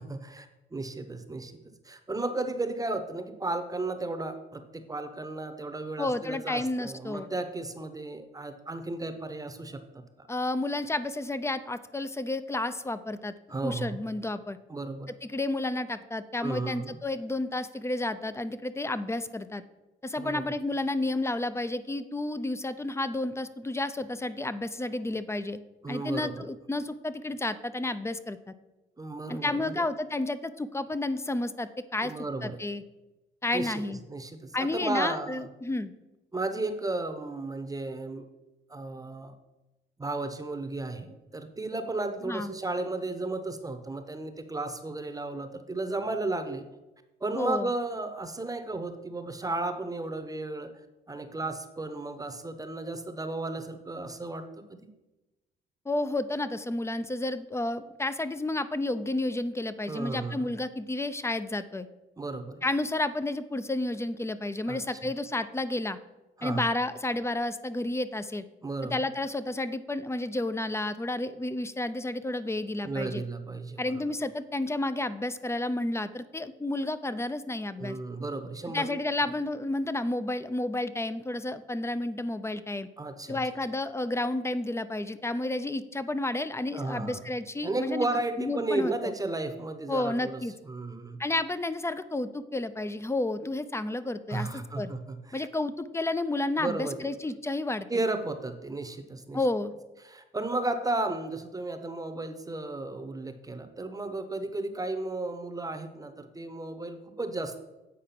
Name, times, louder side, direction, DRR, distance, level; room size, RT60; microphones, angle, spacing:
voice 1, 0.0-1.5 1.8-9.8 10.2-10.3 13.5-14.0 14.7-15.1 16.4-17.0 20.2-20.5 25.8-26.5 29.0-29.8 32.0-32.6 33.5-35.5 36.3-38.3 38.7-39.3 40.0-46.6 47.2-50.7 51.1-54.4 54.7-54.9 59.9-60.5 62.2-62.6 64.7-64.8 66.4-66.7 68.6-69.0 72.8-74.1 77.8-78.9 83.0-83.4 86.7-87.2 87.6-91.2 94.3-95.5 96.6-97.0 97.9-99.4 100.0-107.6, right 2 dB, 15° right, 8 dB, 0.9 m, -34 dB
voice 2, 6.0-7.3 10.3-13.3 13.6-14.6 15.2-19.6 20.0-25.6 25.9-28.5 29.3-32.1 32.4-32.8 33.4-34.0 34.5-35.9 42.3-42.5 47.3-47.7 55.9-61.9 62.6-66.0 66.4-68.4 68.9-73.2 73.8-78.0 78.7-82.9 83.3-88.1 88.4-89.1 89.9-90.5 91.2-94.5 94.8-94.9 95.3-97.9 99.3-99.7, left 2 dB, 15° left, 13 dB, 0.5 m, -31 dB
8.5 x 4.8 x 5.9 m, 1.0 s
cardioid pair, 90°, 20 cm